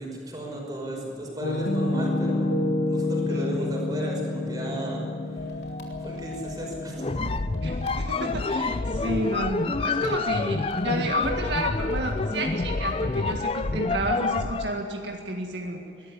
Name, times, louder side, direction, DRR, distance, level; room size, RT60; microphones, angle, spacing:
voice 1, 0.0-2.5 2.9-5.0 5.3-5.5 6.0-7.2 7.8-8.0 9.0-9.3, equal, 20° right, -2 dB, 5.4 m, -34 dB
Piano, 1.4-9.3, left 1 dB, 80° left, 1.4 m, -29 dB
sound 1, 5.4-6.9 7.5-9.0 9.7-11.2 11.9-13.4, left 2 dB, 60° left, 3.7 m, -40 dB
sound 2, 7.0-14.8, left 3 dB, 30° left, 0.4 m, -27 dB
voice 2, 7.6-16.1, right 2 dB, 75° right, 1 dB, 1.9 m, -32 dB
21.5 x 13.5 x 10.0 m, 2.8 s
head